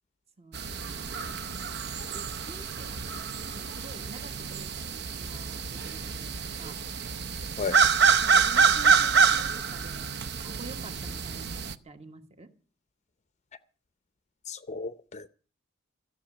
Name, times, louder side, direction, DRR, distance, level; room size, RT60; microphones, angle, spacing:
voice 1, 0.4-1.8 2.1-6.8 8.2-10.2 10.4-12.5, right 3 dB, 30° right, 1.4 m, -49 dB
sound 1, 0.5-11.7, right 6 dB, 55° right, 0.7 m, -27 dB
voice 2, 14.5-15.3, left 4 dB, 35° left, 0.6 m, -34 dB
14.5 x 7.1 x 9.7 m
head